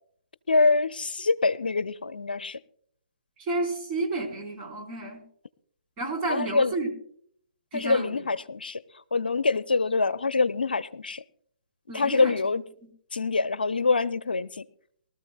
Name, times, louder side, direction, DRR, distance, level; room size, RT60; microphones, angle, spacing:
voice 1, 0.5-2.6 6.3-6.7 7.7-8.8 9.1-11.2 11.9-12.6 13.1-14.6, left 3 dB, 80° left, 0.6 m, -25 dB
voice 2, 3.4-5.2 6.0-6.9 7.7-8.1 11.9-12.4 12.8-12.9, right 2 dB, 25° right, 4.0 m, -31 dB
23.5 x 13.5 x 2.3 m
figure-of-eight pair, 135°, 5 cm